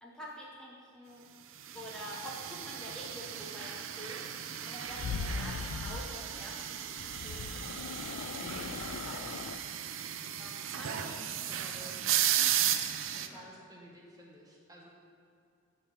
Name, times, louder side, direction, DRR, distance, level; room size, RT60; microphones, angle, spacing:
voice 1, 0.0-1.3 1.7-4.2 4.7-7.4 9.0-9.4 10.4-11.1 12.4-12.7 13.3-13.5, equal, 5° left, -6 dB, 0.9 m, -47 dB
sound 1, 1.7-13.3, right 10 dB, 80° right, 0.5 m, -35 dB
sound 2, 4.9-6.1 7.0-9.6, left 5 dB, 90° left, 0.4 m, -39 dB
voice 2, 8.4-8.8 10.9-12.0 13.0-14.9, equal, 20° right, -2 dB, 1.0 m, -52 dB
10.5 x 3.7 x 7.4 m, 2.4 s
head